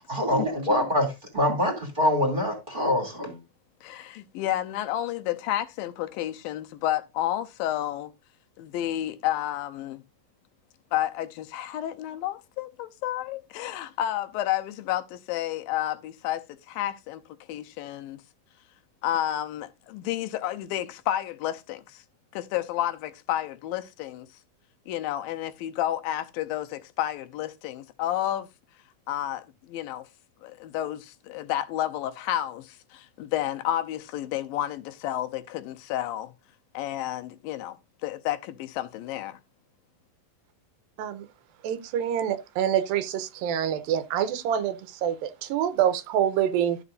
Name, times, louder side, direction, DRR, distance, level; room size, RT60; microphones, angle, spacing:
voice 1, 0.1-3.4, left 1 dB, 15° right, 2.1 m, -25 dB
voice 2, 3.8-8.1 8.6-10.0 10.9-17.2 17.5-18.2 19.0-22.0 22.3-24.3 24.9-28.5 29.1-30.1 30.4-36.3 36.7-37.8 38.0-39.4, left 12 dB, 85° left, 2.5 m, -31 dB
voice 3, 41.6-46.8, right 9 dB, 90° right, 2.5 m, -26 dB
12.5 x 6.9 x 2.5 m
omnidirectional pair, 4.0 m